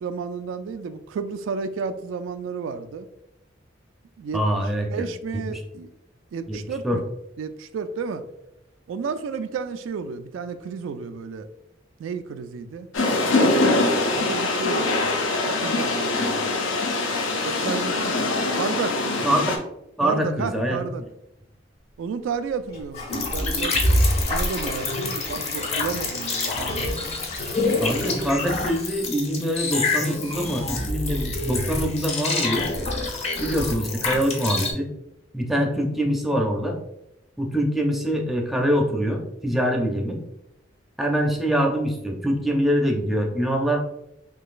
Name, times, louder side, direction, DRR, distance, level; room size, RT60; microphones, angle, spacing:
voice 1, 0.0-3.1 4.2-5.9 6.3-7.0 7.4-8.2 8.9-11.5 12.0-12.9 13.4-15.2 15.5-16.4 17.4-18.2 18.5-19.5 20.0-21.0 22.0-23.8 24.3-27.0, right 5 dB, 90° right, 11 dB, 0.3 m, -32 dB
voice 2, 4.3-5.0 5.5-5.6 6.5-6.6 6.8-7.0 19.2-19.5 20.0-20.8 27.8-32.7 33.4-34.9 35.3-36.8 37.4-40.2 41.0-43.8, equal, ahead, 1 dB, 0.5 m, -24 dB
sound 1, 12.9-19.6, left 2 dB, 90° left, 0.6 m, -23 dB
Gurgling / Toilet flush / Trickle dribble, 22.7-29.7 30.2-30.3 30.7-30.8, left 2 dB, 55° left, 1.4 m, -36 dB
sound 2, 23.1-34.7, left 2 dB, 35° left, 0.7 m, -26 dB
3.8 x 3.0 x 2.4 m, 0.85 s
head